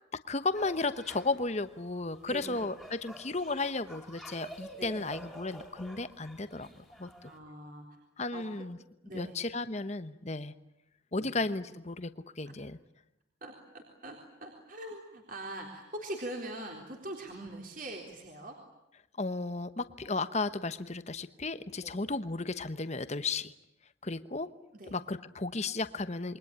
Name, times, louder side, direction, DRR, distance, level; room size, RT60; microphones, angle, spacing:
voice 1, 0.3-7.3 8.2-8.8 9.1-10.5 11.1-12.1 12.4-12.8 19.2-23.5 24.0-24.5 24.9-26.4, left 3 dB, 35° left, 12 dB, 1.0 m, -34 dB
sound 1, 0.5-7.4, equal, ahead, 3.2 m, -49 dB
voice 2, 2.3-2.6 4.7-5.1 6.5-6.6 7.2-8.0 8.3-8.7 9.0-9.4 11.1-11.4 12.5-12.6 13.4-18.6 21.8-22.0 24.7-25.0, right 1 dB, 45° right, 1 dB, 3.8 m, -43 dB
28.0 x 23.0 x 8.8 m, 0.88 s
head